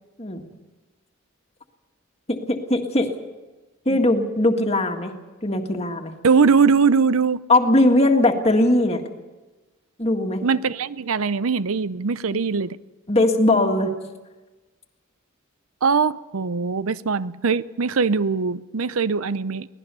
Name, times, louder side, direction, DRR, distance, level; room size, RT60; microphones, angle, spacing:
voice 1, 2.3-3.1 3.9-5.1 5.4-6.1 7.5-9.0 10.0-10.4 12.3-12.4 13.1-13.9, left 1 dB, 30° left, 1.9 m, -19 dB
voice 2, 6.2-7.4 10.4-12.8 15.8-19.7, right 5 dB, 85° right, 0.7 m, -21 dB
24.0 x 17.5 x 6.9 m
head